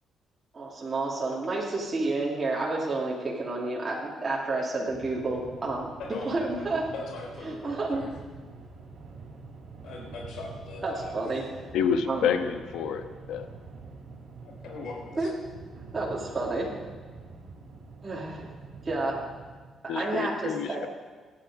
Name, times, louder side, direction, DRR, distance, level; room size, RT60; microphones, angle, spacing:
voice 1, 0.5-5.9 6.2-6.9 7.4-8.0 10.8-11.4 12.1-12.3 15.1-15.3 15.9-16.7 18.0-18.5 18.8-19.2 19.8-20.9, right 2 dB, 20° right, -4 dB, 2.6 m, -30 dB
sound 1, 4.9-19.6, right 3 dB, 45° right, 2.9 m, -46 dB
voice 2, 6.0-6.4 6.9-8.1 9.8-11.6 14.4-15.3, left 3 dB, 60° left, -1 dB, 3.7 m, -41 dB
voice 3, 11.7-13.5 19.9-20.9, left 7 dB, 80° left, 8 dB, 1.2 m, -28 dB
27.5 x 10.0 x 5.0 m, 1.4 s
cardioid pair, 175°, 0 cm